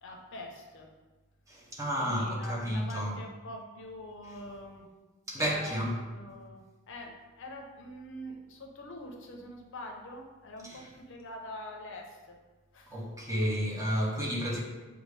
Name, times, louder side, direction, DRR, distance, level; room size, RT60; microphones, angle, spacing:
voice 1, 0.0-0.9 2.0-4.9 5.4-6.6 6.9-12.4 12.7-13.1, left 1 dB, 55° left, 0.7 m, -45 dB
voice 2, 1.5-3.1 5.3-6.0 10.6-10.9 12.9-14.6, equal, 15° right, 0.6 m, -31 dB
6.5 x 2.4 x 3.2 m
head